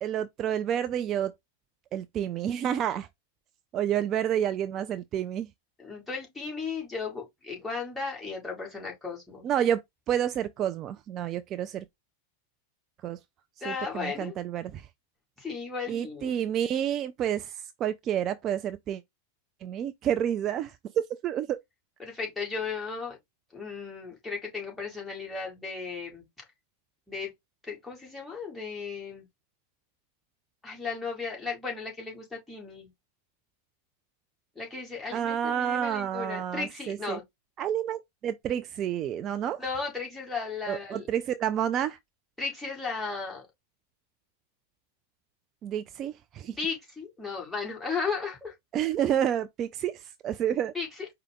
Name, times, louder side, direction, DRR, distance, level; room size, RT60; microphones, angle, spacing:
voice 1, 0.0-1.3 1.9-3.1 3.7-5.5 9.4-9.8 10.1-11.9 13.0-13.2 13.7-14.9 15.9-19.0 19.6-20.8 21.2-21.6 35.1-37.2 37.6-39.6 40.7-42.0 45.6-46.6 48.7-50.7, right 10 dB, 30° right, 0.3 m, -29 dB
voice 2, 5.8-9.5 13.6-14.4 15.4-16.4 22.0-23.2 23.5-26.3 27.1-27.3 27.6-29.3 30.6-32.9 34.6-37.2 39.6-41.1 42.4-43.4 46.4-48.5 50.7-51.1, left 4 dB, 5° left, 1.8 m, -35 dB
4.8 x 2.2 x 3.6 m
figure-of-eight pair, 90°, 0 cm